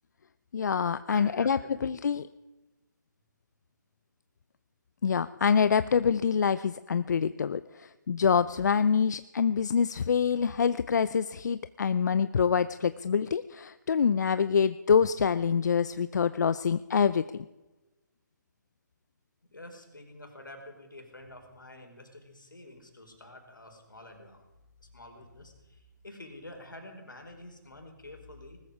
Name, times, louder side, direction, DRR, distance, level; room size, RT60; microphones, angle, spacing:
voice 1, 0.5-2.2 5.0-17.2, left 6 dB, 65° left, 14 dB, 0.6 m, -26 dB
voice 2, 1.0-1.9 19.5-24.5 24.8-28.6, left 1 dB, 90° left, 4 dB, 4.4 m, -48 dB
19.5 x 14.0 x 4.9 m, 1.1 s
figure-of-eight pair, 145°, 10 cm